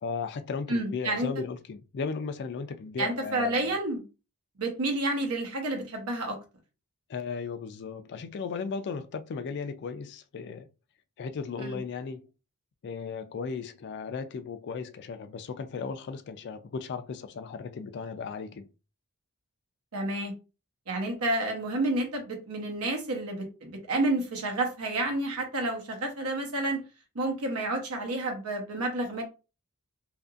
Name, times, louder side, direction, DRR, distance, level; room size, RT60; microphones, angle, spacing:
voice 1, 0.0-3.8 7.1-10.7 11.2-12.3 12.8-18.7, left 5 dB, 50° left, 0.3 m, -36 dB
voice 2, 0.7-1.3 3.0-4.0 4.6-6.4 11.6-11.8 19.9-20.3 20.9-26.8 27.1-29.2, right 2 dB, 75° right, 0.9 m, -30 dB
2.8 x 2.5 x 2.3 m
head